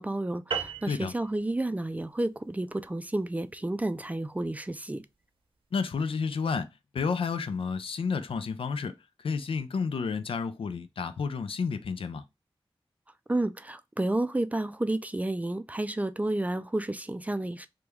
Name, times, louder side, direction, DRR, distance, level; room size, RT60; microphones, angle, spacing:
voice 1, 0.0-5.0 13.3-17.7, right 1 dB, 15° right, 0.4 m, -31 dB
sound 1, 0.5-5.2, right 6 dB, 75° right, 0.7 m, -39 dB
voice 2, 5.7-12.3, left 5 dB, 80° left, 0.4 m, -31 dB
3.0 x 2.2 x 3.4 m
cardioid pair, 55°, 9 cm